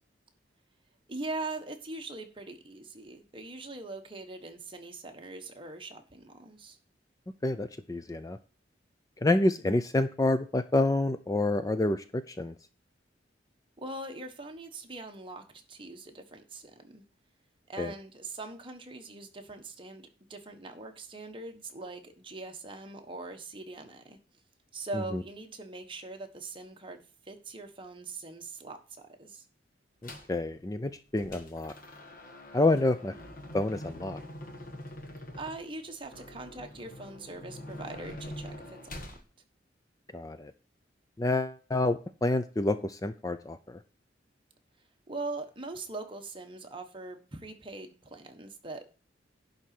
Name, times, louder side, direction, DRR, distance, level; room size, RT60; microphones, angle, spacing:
voice 1, 1.1-6.8 13.8-17.0 17.7-24.2 24.7-28.8 29.2-29.4 35.3-39.0 45.1-48.8, right 2 dB, 30° right, 4 dB, 1.4 m, -42 dB
voice 2, 7.4-8.4 9.2-12.5 17.8-17.9 25.1-25.2 30.0-31.7 32.5-33.1 33.5-34.2 40.1-40.5 41.2-43.8, left 2 dB, 20° left, 11 dB, 0.5 m, -28 dB
sound 1, 30.0-30.4 30.8-39.2, left 1 dB, 50° left, 1.8 m, -45 dB
11.0 x 4.1 x 7.6 m, 0.36 s
head